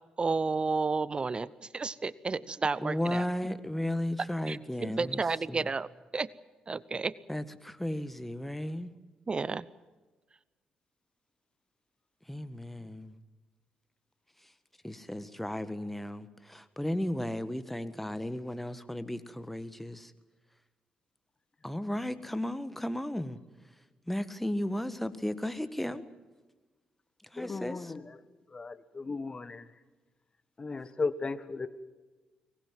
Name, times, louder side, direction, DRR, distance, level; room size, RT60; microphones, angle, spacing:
voice 1, 0.2-3.2 4.5-5.9 6.1-6.3 6.7-7.1 9.3-9.7, right 4 dB, 30° right, 0.7 m, -31 dB
voice 2, 2.8-5.2 5.5-5.7 7.3-8.9 12.3-13.1 14.8-20.1 21.6-23.4 24.1-26.0 27.3-27.9, left 1 dB, 5° left, 1.6 m, -34 dB
voice 3, 27.4-28.2 28.5-29.7 30.6-31.7, left 4 dB, 30° left, 1.5 m, -36 dB
24.0 x 20.0 x 7.6 m
figure-of-eight pair, 40°, 3 cm